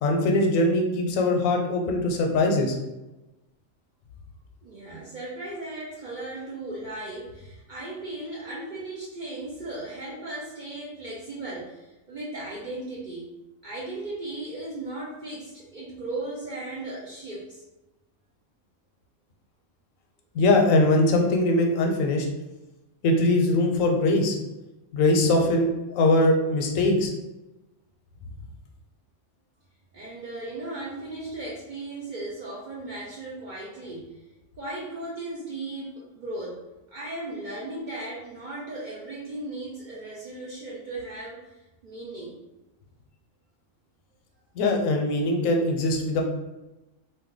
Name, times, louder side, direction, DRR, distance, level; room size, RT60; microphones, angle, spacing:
voice 1, 0.0-2.8 20.3-22.3 23.0-24.4 24.9-27.1 44.6-46.2, left 2 dB, 85° left, 2 dB, 1.0 m, -22 dB
voice 2, 4.6-13.3 13.6-17.6 29.9-34.2 34.6-36.6 36.9-41.4 41.8-42.3, right 2 dB, 55° right, -6 dB, 0.5 m, -36 dB
2.6 x 2.2 x 3.7 m, 1.0 s
omnidirectional pair, 1.3 m